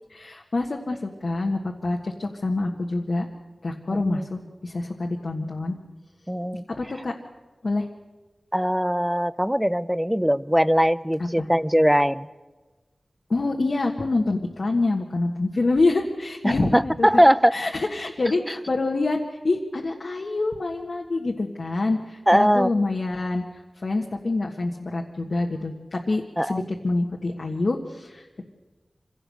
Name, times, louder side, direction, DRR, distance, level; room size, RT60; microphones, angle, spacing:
voice 1, 0.1-3.3 3.6-5.8 6.7-7.1 7.6-7.9 11.2-11.5 13.3-17.2 17.5-19.2 19.4-23.4 23.8-28.4, left 2 dB, 70° left, 0 dB, 1.5 m, -26 dB
voice 2, 3.9-4.3 6.3-6.6 8.5-12.3 16.4-17.5 22.3-22.7 26.4-26.7, equal, 5° right, 17 dB, 0.6 m, -20 dB
25.5 x 17.0 x 6.5 m, 1.3 s
wide cardioid pair, 55°, 0 cm